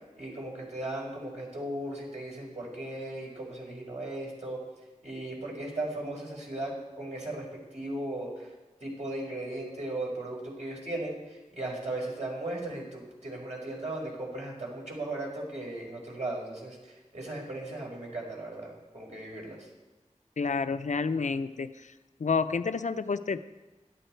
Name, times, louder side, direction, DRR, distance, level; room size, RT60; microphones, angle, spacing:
voice 1, 0.2-4.6 5.0-7.5 7.7-8.5 8.8-19.7, right 1 dB, 65° right, -3 dB, 4.9 m, -37 dB
voice 2, 20.4-21.9 22.2-23.4, left 5 dB, 75° left, 11 dB, 0.6 m, -29 dB
17.0 x 12.5 x 4.5 m, 1.2 s
wide cardioid pair, 55°, 13 cm